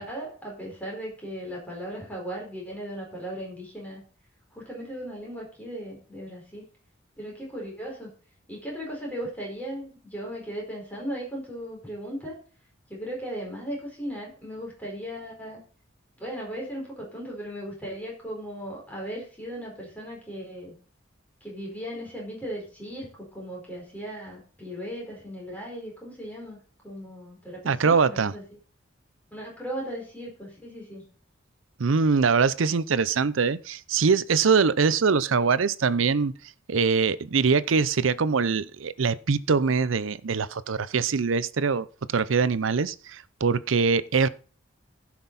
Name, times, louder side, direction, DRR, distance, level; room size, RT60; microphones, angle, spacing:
voice 1, 0.0-4.0 4.5-6.7 7.1-8.1 8.5-12.4 12.9-15.6 16.2-20.7 21.4-26.6 26.8-28.4 29.3-31.0, equal, 10° left, 4.6 m, -37 dB
voice 2, 27.6-28.3 31.8-36.3 36.7-44.3, right 5 dB, 80° right, 0.6 m, -23 dB
15.5 x 6.1 x 4.1 m
head